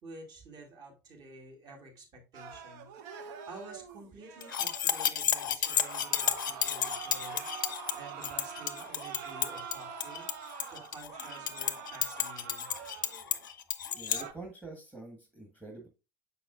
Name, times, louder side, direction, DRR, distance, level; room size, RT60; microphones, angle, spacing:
voice 1, 0.0-7.5 8.0-12.7, right 2 dB, 40° right, 0 dB, 2.4 m, -50 dB
sound 1, 2.3-5.1 5.6-13.4 13.9-14.3, right 7 dB, 55° right, 0.8 m, -45 dB
sound 2, 4.4-14.2, left 9 dB, 70° left, 0.5 m, -32 dB
voice 2, 13.9-15.9, right 3 dB, 10° right, 2 dB, 1.6 m, -46 dB
7.0 x 5.9 x 2.4 m, 0.29 s
figure-of-eight pair, 70°, 11 cm